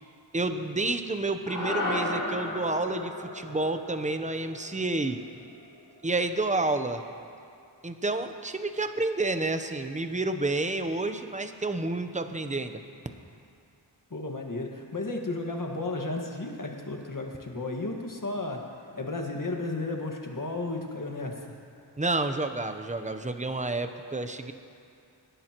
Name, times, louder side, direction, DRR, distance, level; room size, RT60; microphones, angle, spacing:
voice 1, 0.3-5.2 6.0-7.0 7.8-12.8 22.0-24.5, right 2 dB, 15° right, 8 dB, 0.8 m, -29 dB
sound 1, 1.5-5.9, left 2 dB, 65° left, 3.2 m, -34 dB
voice 2, 14.1-18.6 19.0-21.6, left 2 dB, 45° left, 1 dB, 1.8 m, -33 dB
25.5 x 11.0 x 3.0 m, 2.4 s
wide cardioid pair, 50°, 46 cm